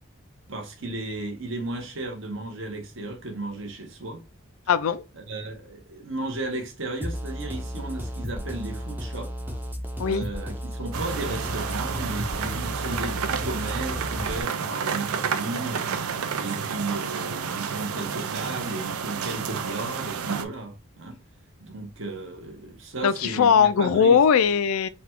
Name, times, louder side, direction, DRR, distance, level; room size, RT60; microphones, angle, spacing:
voice 1, 0.5-4.2 5.3-9.3 10.0-15.9 16.4-21.2 21.6-24.2, right 2 dB, 60° right, 1.0 m, -34 dB
voice 2, 4.7-5.0 10.0-10.3 23.0-24.9, left 7 dB, 75° left, 0.4 m, -20 dB
sound 1, 7.0-14.4, equal, 10° right, 0.5 m, -33 dB
sound 2, 10.9-20.5, right 6 dB, 90° right, 0.5 m, -30 dB
3.9 x 2.3 x 4.4 m
head